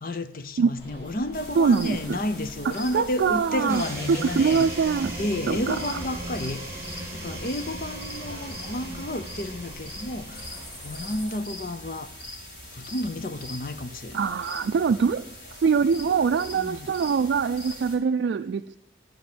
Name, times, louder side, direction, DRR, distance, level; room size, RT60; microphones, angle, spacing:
voice 1, 0.0-4.7 5.2-12.1 12.7-14.3 16.6-16.9, left 1 dB, 50° left, 0.7 m, -31 dB
sound 1, 0.8-11.2, equal, 30° left, 3.9 m, -47 dB
sound 2, 1.3-18.0, left 1 dB, 80° left, 3.9 m, -42 dB
voice 2, 1.6-2.2 2.9-3.8 4.1-5.2 5.5-5.8 14.1-18.8, right 5 dB, 80° right, 0.3 m, -23 dB
sound 3, 3.7-11.2, right 1 dB, 15° right, 2.4 m, -38 dB
10.5 x 5.3 x 7.9 m
head